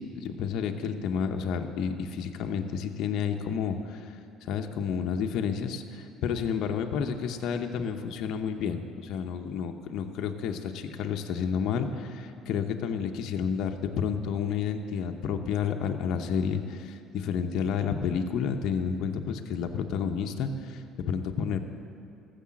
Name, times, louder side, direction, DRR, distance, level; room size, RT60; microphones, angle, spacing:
voice 1, 0.1-4.1 4.4-21.6, left 7 dB, 65° left, 4 dB, 0.8 m, -30 dB
14.0 x 6.8 x 7.5 m, 2.5 s
supercardioid pair, 90°, 0 cm